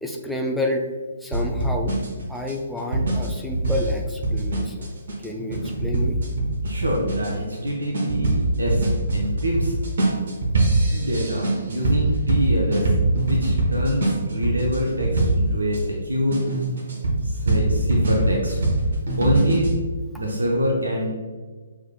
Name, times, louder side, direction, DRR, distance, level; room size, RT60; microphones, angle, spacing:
voice 1, 0.0-0.9 1.2-1.9 2.3-4.9 5.2-6.2, left 1 dB, ahead, 0 dB, 0.4 m, -29 dB
sound 1, 1.3-15.8 16.3-19.8, right 2 dB, 55° right, 1.1 m, -23 dB
voice 2, 6.6-8.9 9.1-9.7 10.9-12.9 13.3-16.4 17.2-18.6 19.2-19.8 20.2-21.1, equal, 75° right, -1 dB, 0.7 m, -25 dB
6.4 x 3.6 x 2.2 m, 1.5 s
figure-of-eight pair, 130°, 0 cm